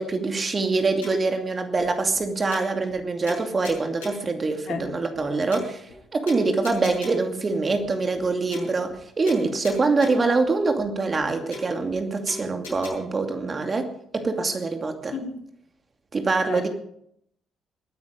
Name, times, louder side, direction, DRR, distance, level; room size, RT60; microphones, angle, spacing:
voice 1, 0.0-13.9 14.1-15.1 16.1-16.7, right 3 dB, 35° right, 5 dB, 2.6 m, -24 dB
sound 1, 1.0-1.4 1.8-1.9 2.1-2.2 2.5-3.0 3.3-4.3 4.8-4.9 5.1-5.2 5.5-6.0 6.3-7.3 7.8-7.9 8.1-8.3 8.5-9.0 9.3-10.3 10.8-10.9 11.1-11.2 11.5-12.0 12.3-12.9, left 2 dB, 85° left, 6.4 m, -39 dB
voice 2, 4.7-4.9 15.1-15.4 16.4-16.7, left 6 dB, 65° left, 4 dB, 2.5 m, -33 dB
22.0 x 9.6 x 5.3 m, 0.70 s
hypercardioid pair, 45°, 0 cm